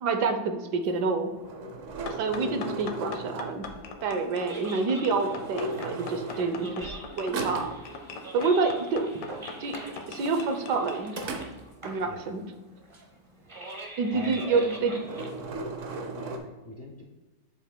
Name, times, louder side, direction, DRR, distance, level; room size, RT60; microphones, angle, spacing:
voice 1, 0.0-1.3 2.2-3.7 4.0-7.7 8.3-9.1 9.6-11.1 11.8-12.4 14.0-15.0, right 4 dB, 75° right, 6 dB, 1.3 m, -28 dB
sound 1, 1.1-3.9 4.9-7.0 7.3-7.9 11.1-12.0 14.3-14.6 14.8-16.4, right 2 dB, 55° right, 0.9 m, -37 dB
sound 2, 2.1-11.3, left 4 dB, 80° left, 1.4 m, -41 dB
sound 3, 4.2-16.4, right 2 dB, 25° right, 0.7 m, -45 dB
voice 2, 14.1-14.7 16.1-17.0, left 2 dB, 60° left, 0 dB, 0.6 m, -42 dB
7.8 x 7.2 x 2.2 m, 1.2 s
omnidirectional pair, 1.8 m